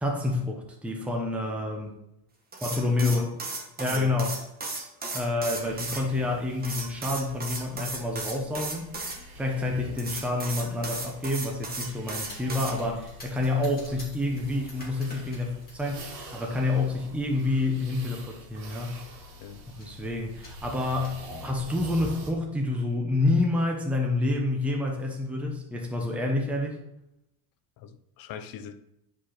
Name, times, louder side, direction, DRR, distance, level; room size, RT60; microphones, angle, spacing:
voice 1, 0.0-2.0 2.6-3.3 3.8-4.4 5.1-8.9 9.3-19.0 19.8-26.8, left 2 dB, 5° right, 1 dB, 0.9 m, -28 dB
sound 1, 2.5-6.0 6.6-9.2 10.0-12.7, right 3 dB, 20° right, 1.3 m, -35 dB
sound 2, 5.6-22.3, equal, 80° right, 2.4 m, -46 dB
sound 3, 11.9-16.3 16.7-17.1 18.0-18.1 18.4-18.5 18.8-19.3 19.8-20.0 20.4-21.3, left 2 dB, 20° left, 2.6 m, -49 dB
voice 2, 27.8-28.7, left 9 dB, 45° left, 9 dB, 0.8 m, -38 dB
9.8 x 5.3 x 4.3 m, 0.84 s
cardioid pair, 165°, 47 cm